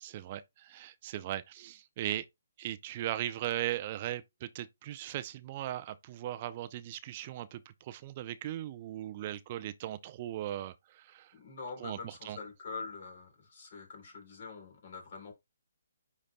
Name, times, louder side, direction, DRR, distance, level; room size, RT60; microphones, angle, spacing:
voice 1, 0.0-2.3 2.6-11.3 11.8-12.4, right 13 dB, 35° right, 0.5 m, -38 dB
voice 2, 11.3-15.3, left 4 dB, 50° left, 3.4 m, -45 dB
10.0 x 4.1 x 2.2 m
figure-of-eight pair, 145°, 0 cm